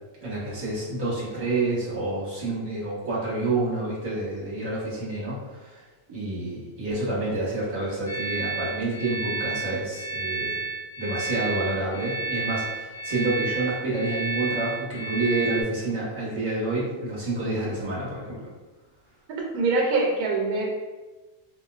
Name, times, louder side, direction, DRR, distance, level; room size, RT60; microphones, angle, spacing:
voice 1, 0.2-10.6 11.0-18.5, right 2 dB, 30° right, -8 dB, 1.2 m, -28 dB
sound 1, 8.1-15.6, right 3 dB, 25° left, 0.7 m, -31 dB
voice 2, 19.5-20.7, right 3 dB, 85° right, -1 dB, 1.1 m, -23 dB
3.6 x 2.6 x 2.4 m, 1.2 s
omnidirectional pair, 1.5 m